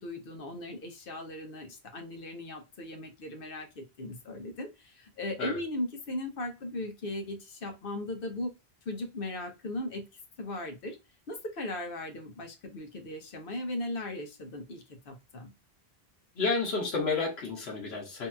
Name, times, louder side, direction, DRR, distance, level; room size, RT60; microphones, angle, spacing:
voice 1, 0.0-8.5 8.8-10.0 10.4-11.0 11.3-15.5, left 1 dB, 65° left, 0.9 m, -38 dB
voice 2, 16.4-18.3, left 4 dB, 80° left, 1.1 m, -30 dB
2.8 x 2.7 x 2.2 m
omnidirectional pair, 1.1 m